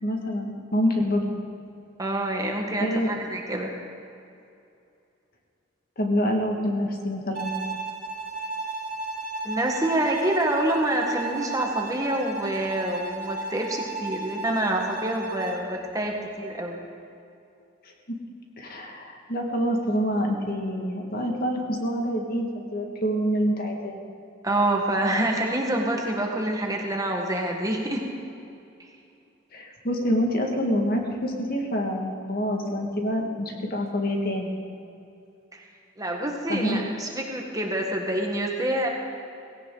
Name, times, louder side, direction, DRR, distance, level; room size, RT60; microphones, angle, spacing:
voice 1, 0.0-1.3 2.8-3.1 6.0-7.5 17.8-18.2 18.6-24.0 29.5-34.6 36.5-36.8, equal, 50° left, 1 dB, 1.9 m, -26 dB
voice 2, 2.0-3.7 9.4-16.8 24.4-28.1 28.8-28.9 35.5-35.7 36.0-38.9, right 1 dB, 15° right, 1 dB, 1.5 m, -27 dB
Bowed string instrument, 7.3-15.7, right 3 dB, 45° right, 2.6 m, -34 dB
18.0 x 17.0 x 3.9 m, 2.6 s
head